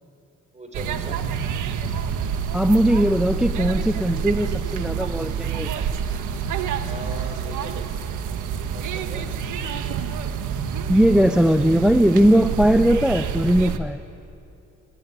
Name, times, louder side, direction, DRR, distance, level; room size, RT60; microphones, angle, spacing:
voice 1, 0.5-1.2 6.8-7.9 8.7-9.3, right 1 dB, 25° right, 5 dB, 4.5 m, -38 dB
sound 1, 0.7-13.8, right 7 dB, 80° right, 1.5 m, -27 dB
voice 2, 2.5-5.8 10.9-14.0, equal, 5° right, 10 dB, 0.6 m, -19 dB
22.5 x 21.0 x 9.7 m, 2.8 s
cardioid pair, 90°, 30 cm